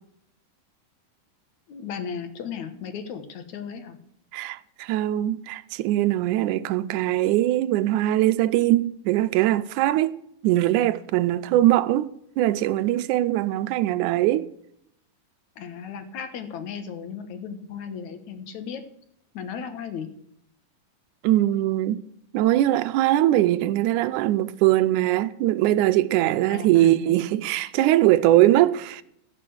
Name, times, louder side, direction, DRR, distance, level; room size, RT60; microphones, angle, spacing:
voice 1, 1.7-4.0 15.6-18.8 19.3-20.1 26.5-27.2, left 7 dB, 65° left, 2.5 m, -35 dB
voice 2, 4.3-12.1 12.4-14.5 21.2-22.0 22.3-29.0, right 14 dB, 75° right, 1.9 m, -21 dB
16.0 x 6.7 x 7.9 m
omnidirectional pair, 3.9 m